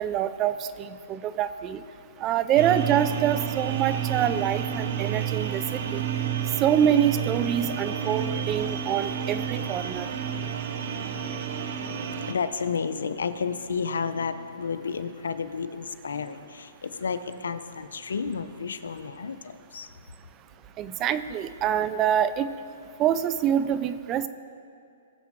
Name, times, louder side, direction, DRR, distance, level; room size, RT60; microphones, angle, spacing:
voice 1, 0.0-1.8 2.2-6.0 6.6-10.1 20.8-22.5 23.0-24.3, right 10 dB, 25° right, 13 dB, 0.5 m, -25 dB
sound 1, 2.6-12.3, right 8 dB, 55° right, 1.0 m, -30 dB
voice 2, 11.9-19.9, left 5 dB, 85° left, 11 dB, 0.7 m, -31 dB
20.0 x 7.2 x 3.7 m, 2.4 s
hypercardioid pair, 145°, 0 cm